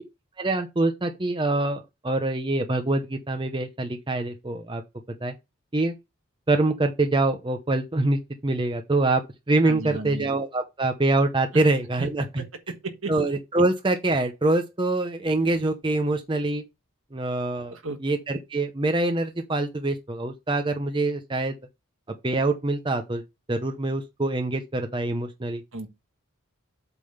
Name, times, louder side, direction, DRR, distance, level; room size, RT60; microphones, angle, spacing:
voice 1, 0.4-4.8 5.2-5.3 5.7-5.9 6.5-12.4 13.1-16.6 17.1-21.6 22.2-23.2 23.5-25.6, right 2 dB, 20° right, 0.6 m, -25 dB
voice 2, 9.6-10.3 11.5-11.6 12.0-12.1 12.4-13.1 17.7-18.0 25.7-25.9, right 3 dB, 70° right, 1.5 m, -34 dB
8.2 x 3.6 x 5.5 m
head